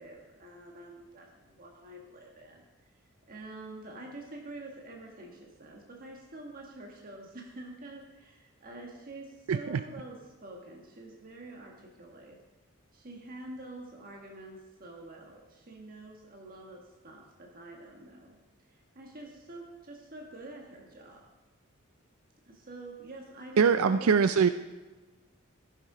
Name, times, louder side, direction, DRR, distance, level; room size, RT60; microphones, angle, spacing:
voice 1, 0.0-2.6 3.3-12.4 12.9-18.4 18.7-21.2 22.4-24.3, right 2 dB, 45° right, 0 dB, 1.5 m, -47 dB
voice 2, 9.5-9.8 23.6-24.5, right 6 dB, 80° right, 11 dB, 0.4 m, -23 dB
14.5 x 6.7 x 4.9 m, 1.2 s
head